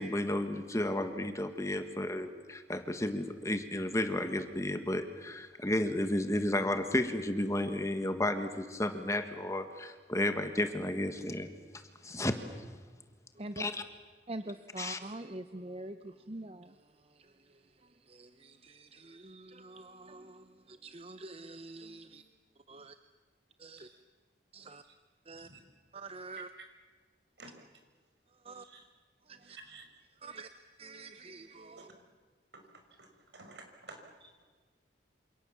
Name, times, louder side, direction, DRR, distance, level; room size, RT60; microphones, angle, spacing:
voice 1, 0.0-11.5 12.0-12.4 13.6-13.7 14.8-15.0, left 1 dB, 15° left, 1.6 m, -32 dB
voice 2, 13.3-13.7 14.3-22.2 22.7-23.0 23.6-23.9 24.5-24.8 25.2-25.5 25.9-26.5 28.3-28.7 29.2-29.6 30.2-31.9, right 2 dB, 30° right, 0.8 m, -46 dB
voice 3, 28.5-28.8 29.5-29.9 32.5-34.0, right 3 dB, 70° right, 5.9 m, -52 dB
28.0 x 28.0 x 7.3 m
head